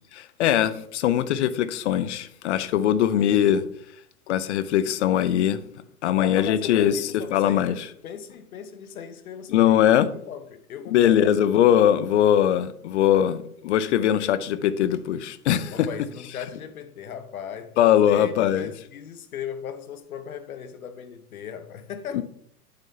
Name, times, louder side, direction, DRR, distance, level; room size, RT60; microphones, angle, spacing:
voice 1, 0.1-3.6 4.3-5.6 6.0-7.7 9.5-10.1 10.9-13.4 13.6-15.9 17.8-18.7 22.1-22.2, left 10 dB, 50° left, 0.7 m, -21 dB
voice 2, 6.1-11.4 15.7-17.8 18.1-22.2, left 8 dB, 70° left, 1.1 m, -37 dB
8.9 x 7.2 x 2.8 m
hypercardioid pair, 120°, 44 cm